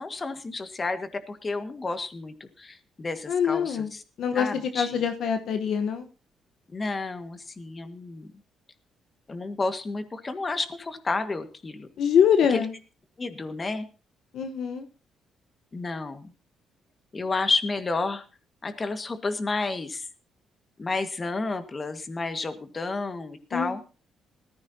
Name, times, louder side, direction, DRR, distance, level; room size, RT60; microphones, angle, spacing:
voice 1, 0.0-4.0 4.3-5.0 6.7-8.3 9.3-11.9 12.5-12.6 13.2-13.9 15.7-16.3 17.1-18.2 18.6-20.0 20.8-23.8, left 3 dB, 30° left, 8 dB, 1.8 m, -31 dB
voice 2, 3.3-3.9 4.2-6.0 12.0-12.7 14.3-14.9 23.5-23.8, left 7 dB, 70° left, 7 dB, 1.2 m, -24 dB
19.5 x 14.5 x 2.9 m, 0.34 s
cardioid pair, 90°, 0 cm